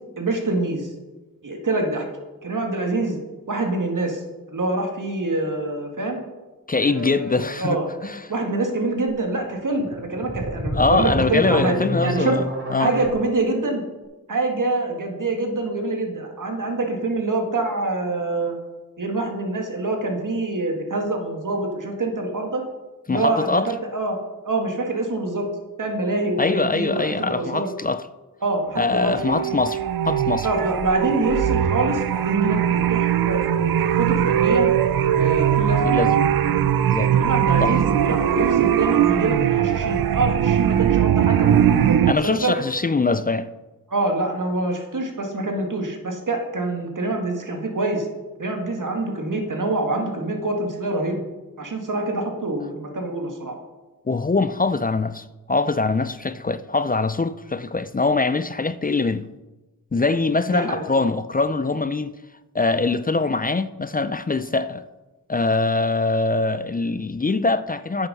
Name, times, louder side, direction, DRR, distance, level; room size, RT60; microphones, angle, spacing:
voice 1, 0.2-0.9 1.4-2.1 2.4-3.2 3.5-4.2 4.5-6.2 6.8-7.9 8.3-11.8 12.0-12.4 12.8-13.8 14.3-18.6 19.0-22.6 23.1-24.2 24.4-25.5 25.8-27.7 28.4-29.1 30.4-33.4 33.8-34.7 35.1-35.9 37.0-42.5 43.9-48.1 48.4-51.2 51.6-53.5 60.5-60.9, right 2 dB, 60° right, 1.9 m, -25 dB
voice 2, 6.7-8.3 10.7-12.9 23.1-23.7 26.4-28.0 28.8-30.5 35.9-36.1 36.9-37.1 37.6-37.8 42.1-43.5 54.1-59.3 59.9-62.1 62.5-64.8 65.3-68.1, left 3 dB, 25° left, 0.4 m, -23 dB
sound 1, 9.8-13.1, equal, 35° right, 3.2 m, -28 dB
sound 2, 28.8-42.1, right 10 dB, 80° right, 0.5 m, -20 dB
9.1 x 6.5 x 5.5 m
cardioid pair, 40°, 35 cm